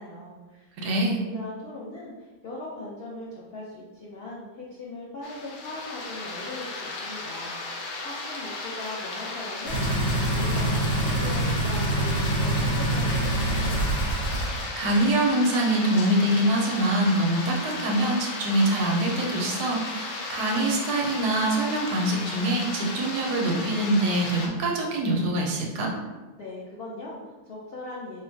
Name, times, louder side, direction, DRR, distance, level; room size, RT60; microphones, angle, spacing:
voice 1, 0.0-7.6 8.0-14.0 26.4-28.2, left 2 dB, 90° left, -5 dB, 0.5 m, -40 dB
voice 2, 0.8-1.2 14.8-25.9, right 1 dB, 75° right, 0 dB, 1.2 m, -24 dB
sound 1, 5.2-24.5, left 3 dB, 70° left, 1.0 m, -35 dB
sound 2, 9.7-14.6 15.0-15.1, right 1 dB, 35° left, 0.8 m, -25 dB
4.1 x 2.1 x 2.6 m, 1.2 s
omnidirectional pair, 1.7 m